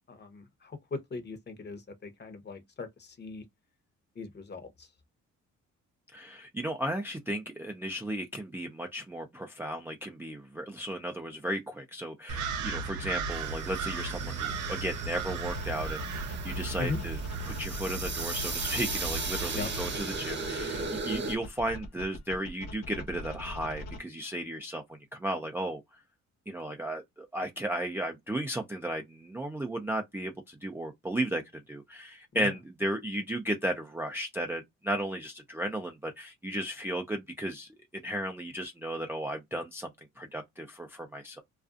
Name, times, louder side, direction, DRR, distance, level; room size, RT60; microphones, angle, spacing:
voice 1, 0.1-3.4 4.1-4.9 16.8-17.0 19.5-19.7 32.3-32.6, left 4 dB, 35° left, 0.8 m, -39 dB
voice 2, 6.1-17.2 17.5-25.8 26.5-41.4, right 1 dB, 10° right, 0.3 m, -35 dB
sound 1, 12.3-20.0, right 4 dB, 80° right, 0.7 m, -36 dB
sound 2, 13.3-21.4, right 3 dB, 35° right, 0.9 m, -37 dB
sound 3, 15.2-24.0, left 1 dB, 85° left, 1.0 m, -42 dB
2.4 x 2.3 x 2.4 m
cardioid pair, 90°, 30 cm